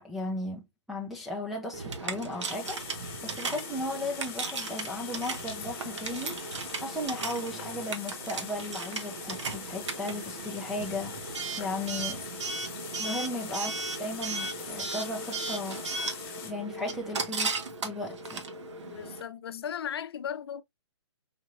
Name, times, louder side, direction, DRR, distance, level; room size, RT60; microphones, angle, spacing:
voice 1, 0.0-6.4 6.8-11.3 11.6-12.2 13.0-15.8 16.4-17.5 17.8-18.4, left 1 dB, ahead, 0.3 m, -36 dB
Coin (dropping) / Alarm, 1.7-19.2, right 4 dB, 85° right, 1.1 m, -36 dB
sound 1, 2.4-16.5, left 7 dB, 20° left, 1.5 m, -43 dB
voice 2, 18.9-20.6, left 9 dB, 60° left, 0.6 m, -37 dB
4.9 x 3.0 x 2.4 m
hypercardioid pair, 165°, 15 cm